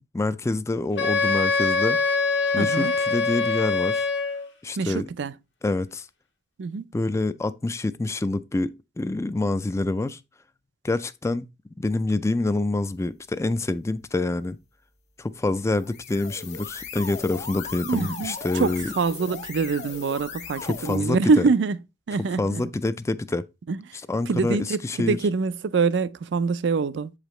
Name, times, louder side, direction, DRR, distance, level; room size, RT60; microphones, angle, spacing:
voice 1, 0.0-2.0 2.5-4.1 4.6-5.1 5.6-6.1 6.9-10.2 10.8-11.5 11.8-14.6 15.2-18.9 20.6-21.2 22.4-23.4 24.1-25.2, left 2 dB, 15° left, 0.3 m, -26 dB
Wind instrument woodwind instrument, 1.0-4.5, left 4 dB, 80° left, 1.5 m, -23 dB
voice 2, 2.6-2.9 4.8-5.3 6.6-6.9 17.9-21.8 22.1-22.7 23.7-24.0 24.3-27.1, right 4 dB, 75° right, 0.4 m, -25 dB
sound 1, 15.7-21.0, left 5 dB, 40° left, 1.3 m, -37 dB
7.3 x 5.0 x 3.0 m
head